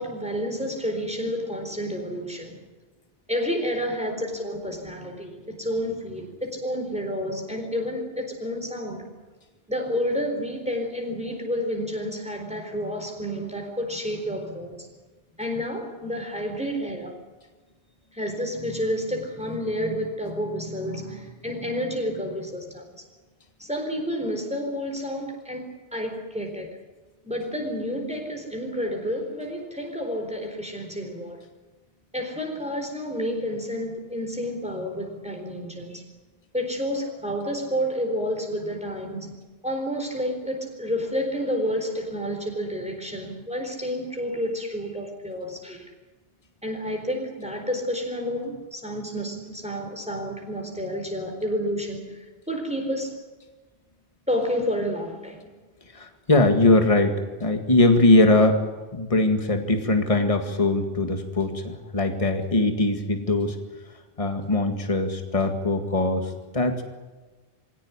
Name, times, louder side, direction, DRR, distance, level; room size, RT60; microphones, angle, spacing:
voice 1, 0.0-2.6 3.3-9.1 9.7-14.8 15.4-17.1 18.1-22.8 23.6-25.7 25.9-26.7 27.2-31.4 32.1-36.0 36.5-39.3 39.6-45.9 46.6-53.1 54.3-55.4, equal, 5° right, 2 dB, 4.2 m, -30 dB
voice 2, 55.9-57.2 57.4-58.6 58.9-63.6 64.2-66.8, left 2 dB, 35° left, 6 dB, 2.1 m, -21 dB
23.5 x 17.5 x 9.9 m, 1.3 s
omnidirectional pair, 1.0 m